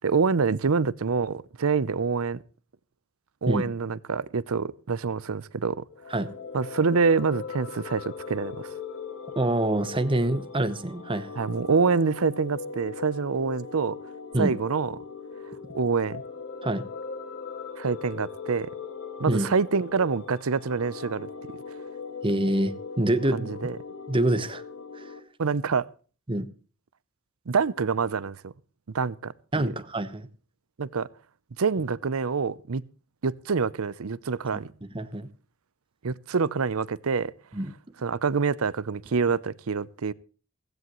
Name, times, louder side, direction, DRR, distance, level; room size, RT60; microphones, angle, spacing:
voice 1, 0.0-2.4 3.4-5.8 6.5-8.7 11.4-14.0 14.4-14.9 15.7-16.2 17.8-18.7 19.2-21.3 23.3-23.8 25.4-25.8 27.5-28.5 28.9-29.7 30.8-31.1 31.6-32.8 33.2-34.7 36.0-37.3 38.0-40.1, right 5 dB, 85° right, 0.6 m, -26 dB
sound 1, 5.9-25.2, left 5 dB, 70° left, 2.0 m, -40 dB
voice 2, 9.4-11.3 14.3-14.5 16.6-16.8 19.3-19.5 22.2-23.5 24.1-24.6 24.9-25.0 26.3-26.5 29.5-30.3 34.5-34.6 34.9-35.3 37.5-37.7 39.1-39.2, right 1 dB, 25° right, 1.0 m, -26 dB
16.0 x 16.0 x 3.1 m
head